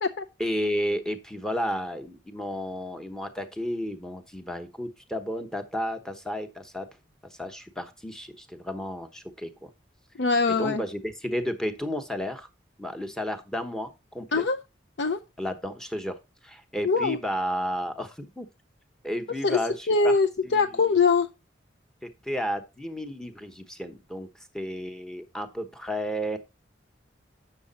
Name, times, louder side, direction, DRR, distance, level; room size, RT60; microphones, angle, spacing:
voice 1, 0.4-6.9 7.3-9.7 10.5-12.5 12.8-14.4 15.4-18.5 19.0-20.1 20.4-20.7 22.0-24.3 24.5-26.4, equal, 5° left, 0.9 m, -32 dB
voice 2, 10.2-10.8 14.3-14.6 15.0-15.2 16.8-17.2 19.4-19.6 19.9-21.3, left 4 dB, 65° left, 0.5 m, -22 dB
8.5 x 6.7 x 4.0 m
head